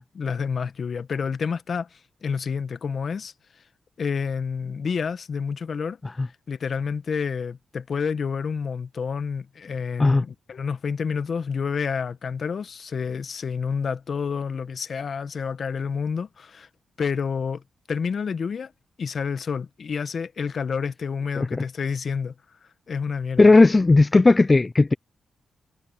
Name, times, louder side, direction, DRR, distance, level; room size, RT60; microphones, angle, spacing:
voice 1, 0.0-3.3 4.0-6.0 6.5-16.7 17.0-17.6 17.9-18.7 19.0-22.3 22.9-23.5, left 6 dB, 60° left, 1.2 m, -29 dB
voice 2, 23.4-24.9, left 3 dB, 30° left, 0.5 m, -15 dB
cardioid pair, 60°, 0 cm